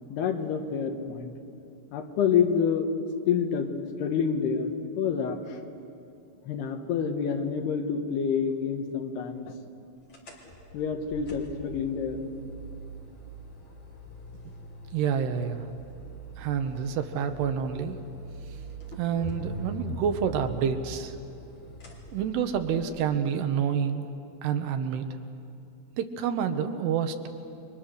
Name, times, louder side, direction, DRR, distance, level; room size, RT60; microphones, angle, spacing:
voice 1, 0.1-1.3 1.9-2.9 3.3-5.6 6.5-9.5 10.7-12.2, left 6 dB, 75° left, 5 dB, 3.3 m, -28 dB
sound 1, 10.1-22.9, right 1 dB, 30° left, 3.3 m, -42 dB
voice 2, 14.9-15.6 16.4-18.0 19.0-21.2 22.1-24.1 24.4-25.1 26.0-27.3, right 7 dB, 80° right, 7 dB, 3.1 m, -28 dB
29.5 x 23.5 x 6.6 m, 2.6 s
omnidirectional pair, 4.9 m